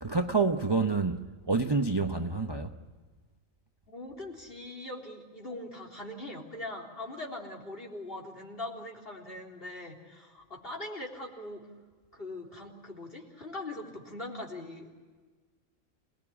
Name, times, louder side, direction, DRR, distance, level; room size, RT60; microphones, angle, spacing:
voice 1, 0.0-2.7, right 4 dB, 25° right, 0.7 m, -28 dB
voice 2, 3.9-11.6 12.1-14.9, left 2 dB, 45° left, 4.0 m, -41 dB
27.0 x 19.5 x 9.9 m
omnidirectional pair, 1.4 m